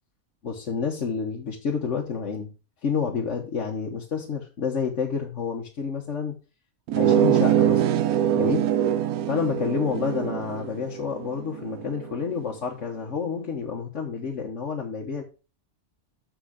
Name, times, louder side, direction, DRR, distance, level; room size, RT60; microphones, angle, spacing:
voice 1, 0.4-2.5 2.8-6.4 6.9-7.8 8.3-8.7 9.3-15.2, left 6 dB, 55° left, -1 dB, 1.5 m, -29 dB
sound 1, 6.9-12.2, right 10 dB, 90° right, 1.1 m, -24 dB
6.9 x 6.5 x 4.9 m, 0.33 s
omnidirectional pair, 1.5 m